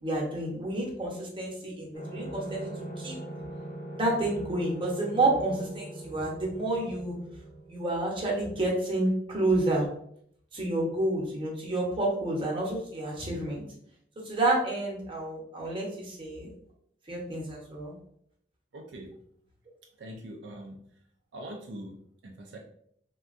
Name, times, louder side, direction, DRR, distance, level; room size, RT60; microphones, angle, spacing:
voice 1, 0.0-2.7 3.0-3.2 3.9-7.2 7.7-9.9 10.5-13.6 14.2-16.5 17.1-17.9, right 2 dB, 30° right, -3 dB, 0.9 m, -29 dB
sound 1, 1.9-8.2, right 1 dB, 55° left, 0.9 m, -41 dB
voice 2, 18.7-19.1 20.0-20.8 21.3-22.6, right 1 dB, 75° right, 1 dB, 0.4 m, -43 dB
3.5 x 2.2 x 2.5 m, 0.68 s
head